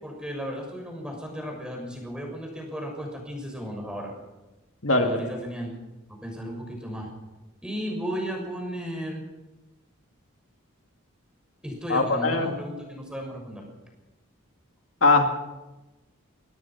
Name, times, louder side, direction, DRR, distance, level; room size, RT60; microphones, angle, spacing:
voice 1, 0.0-4.1 4.9-5.7 6.1-7.1 7.6-9.2 11.6-13.7, equal, 5° right, 1 dB, 6.4 m, -34 dB
voice 2, 11.9-12.5 15.0-15.3, left 3 dB, 65° left, 3 dB, 2.3 m, -20 dB
24.5 x 18.0 x 5.9 m, 1.1 s
head